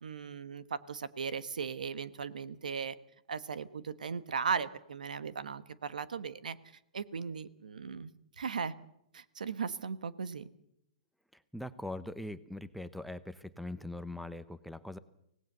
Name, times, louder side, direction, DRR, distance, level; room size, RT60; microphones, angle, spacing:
voice 1, 0.0-2.9 3.3-6.6 6.9-8.1 8.4-8.7 9.1-10.5, right 6 dB, 90° right, 15 dB, 1.3 m, -37 dB
voice 2, 11.5-15.0, left 1 dB, ahead, 11 dB, 0.8 m, -41 dB
24.5 x 18.0 x 6.8 m, 0.77 s
hypercardioid pair, 140°, 4 cm